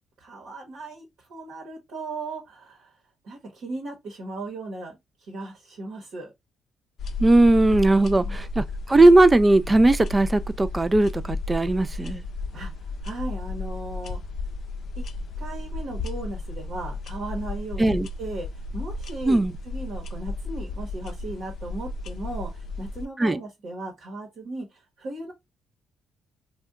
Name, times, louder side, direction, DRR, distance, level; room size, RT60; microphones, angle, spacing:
voice 1, 0.2-3.0 3.2-6.3 7.9-8.4 12.5-14.2 15.0-15.1 15.4-18.5 18.7-19.4 19.6-25.3, right 2 dB, 70° right, 1.0 m, -37 dB
sound 1, 7.0-23.0, left 2 dB, 60° left, 0.5 m, -33 dB
voice 2, 7.2-12.2 17.8-18.1 19.3-19.5 23.2-23.4, right 2 dB, 25° right, 0.4 m, -18 dB
2.6 x 2.3 x 3.4 m
hypercardioid pair, 50°, 0 cm